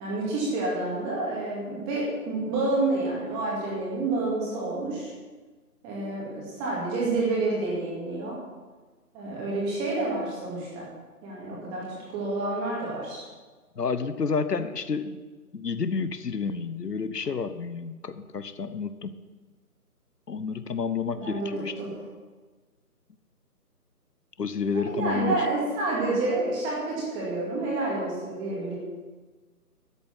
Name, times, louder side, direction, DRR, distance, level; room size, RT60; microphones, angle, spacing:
voice 1, 0.0-5.1 5.8-8.4 9.1-10.9 11.2-13.2 21.1-21.9 24.7-28.7, right 2 dB, 10° right, -5 dB, 2.2 m, -29 dB
voice 2, 13.8-15.2 15.5-19.2 20.3-21.7 24.4-25.4, left 5 dB, 80° left, 12 dB, 1.2 m, -30 dB
13.0 x 7.3 x 8.8 m, 1.3 s
figure-of-eight pair, 165°, 47 cm